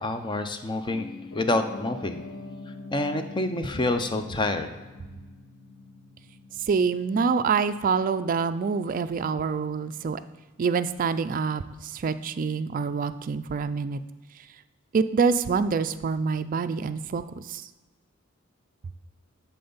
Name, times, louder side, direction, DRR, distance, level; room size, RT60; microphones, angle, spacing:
voice 1, 0.0-2.2 2.9-4.8, left 2 dB, 20° left, 8 dB, 0.5 m, -27 dB
Piano, 0.9-10.9 11.2-11.3, left 2 dB, 80° left, 1.1 m, -45 dB
voice 2, 6.7-10.2 10.6-14.0 14.9-17.6, right 5 dB, 40° right, 11 dB, 0.3 m, -26 dB
10.5 x 4.3 x 3.9 m, 1.2 s
head